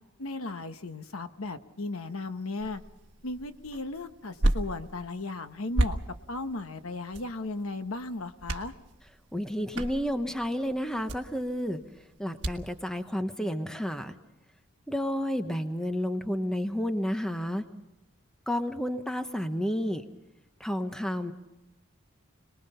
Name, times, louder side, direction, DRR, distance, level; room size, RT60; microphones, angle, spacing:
voice 1, 0.2-2.8 3.2-6.0 6.3-8.7, left 2 dB, 75° left, 9 dB, 1.2 m, -36 dB
sound 1, 2.6-12.8, right 1 dB, 55° right, 1.4 m, -34 dB
voice 2, 9.3-11.8 12.2-14.2 14.9-17.6 18.5-20.0 20.6-21.3, equal, 5° left, 8 dB, 0.9 m, -31 dB
27.0 x 20.5 x 5.6 m, 0.99 s
head